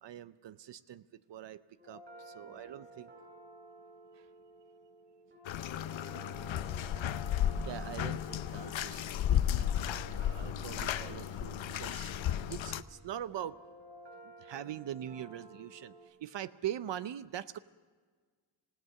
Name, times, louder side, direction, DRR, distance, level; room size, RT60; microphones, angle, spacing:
voice 1, 0.0-1.0 1.3-3.1 4.2-4.3 7.6-9.7 10.2-13.6 14.4-17.6, right 11 dB, 70° right, 14 dB, 0.6 m, -43 dB
sound 1, 1.8-16.0, right 2 dB, 25° right, 7.3 m, -54 dB
voice 2, 2.4-2.8 5.7-7.4, left 3 dB, 15° left, 1 dB, 2.5 m, -58 dB
Bathtub (filling or washing), 5.5-12.8, left 10 dB, 80° left, 0.8 m, -34 dB
27.0 x 17.5 x 6.5 m, 1.5 s
wide cardioid pair, 165°, 45 cm